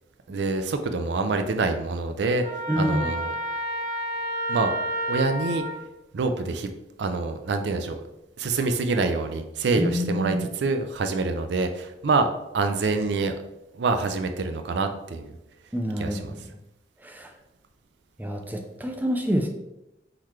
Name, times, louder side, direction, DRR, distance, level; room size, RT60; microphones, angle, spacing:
voice 1, 0.3-2.5 2.8-3.3 4.5-4.8 5.1-5.7 6.1-6.7 7.0-8.0 8.4-12.3 12.5-13.3 13.7-15.4 16.0-16.3, right 3 dB, 80° right, 7 dB, 0.4 m, -26 dB
Trumpet, 2.4-5.8, equal, 50° right, 1.3 m, -30 dB
voice 2, 2.7-3.1 9.8-10.5 15.7-16.4 17.0-17.3 18.2-19.5, equal, 10° right, 3 dB, 0.4 m, -27 dB
4.3 x 3.9 x 3.1 m, 0.92 s
head